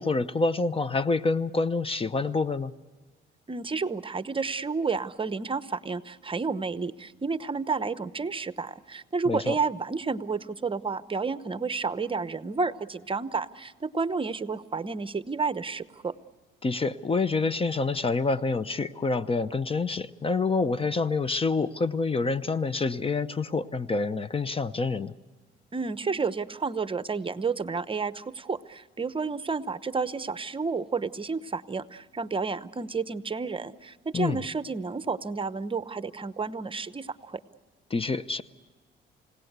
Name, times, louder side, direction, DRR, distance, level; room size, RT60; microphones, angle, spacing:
voice 1, 0.0-2.7 9.3-9.6 16.6-25.1 34.1-34.4 37.9-38.4, left 3 dB, 30° left, 15 dB, 0.7 m, -27 dB
voice 2, 3.5-16.1 25.7-37.4, right 4 dB, 25° right, 14 dB, 0.9 m, -31 dB
29.5 x 17.5 x 8.1 m, 1.4 s
cardioid pair, 90°, 20 cm